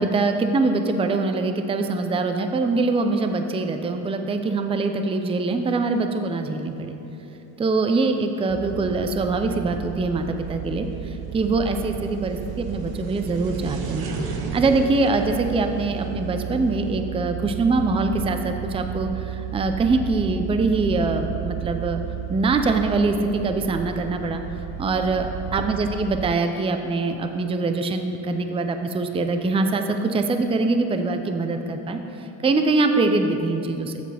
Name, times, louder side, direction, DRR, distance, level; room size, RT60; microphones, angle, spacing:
voice 1, 0.0-7.0 7.6-22.0 22.3-24.4 24.8-34.0, right 3 dB, 15° right, 6 dB, 0.5 m, -23 dB
sound 1, 4.5-17.0, right 3 dB, 60° right, 1.2 m, -37 dB
sound 2, 8.5-26.3, right 13 dB, 90° right, 0.6 m, -34 dB
14.0 x 7.7 x 3.4 m, 2.9 s
cardioid pair, 115°, 42 cm